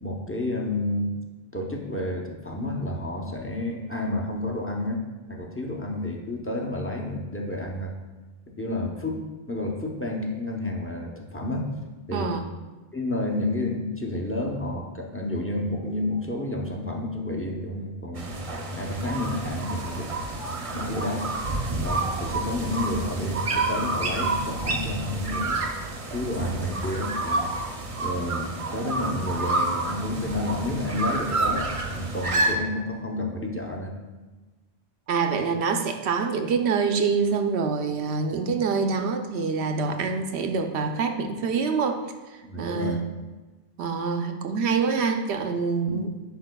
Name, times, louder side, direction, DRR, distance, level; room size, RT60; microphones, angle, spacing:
voice 1, 0.0-1.2 1.5-5.0 5.3-7.9 8.5-11.7 12.1-12.3 12.9-18.4 18.8-20.5 20.7-21.3 21.8-25.7 26.1-27.5 28.0-33.9 42.4-43.0 45.9-46.0, left 1 dB, 15° left, 0 dB, 0.5 m, -30 dB
voice 2, 12.1-12.5 35.1-43.0 43.8-46.1, right 5 dB, 90° right, 5 dB, 0.9 m, -26 dB
sound 1, 18.2-32.5, right 2 dB, 40° right, 0.6 m, -29 dB
10.5 x 4.8 x 2.2 m, 1.2 s
omnidirectional pair, 1.1 m